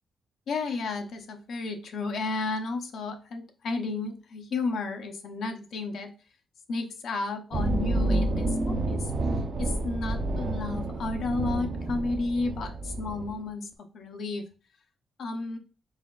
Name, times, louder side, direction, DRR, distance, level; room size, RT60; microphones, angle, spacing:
voice 1, 0.5-6.1 6.7-14.5 15.2-15.6, left 3 dB, 65° left, 4 dB, 0.7 m, -32 dB
sound 1, 7.5-13.4, right 2 dB, 45° right, 0.5 m, -29 dB
4.1 x 4.0 x 2.4 m, 0.34 s
wide cardioid pair, 165°, 0 cm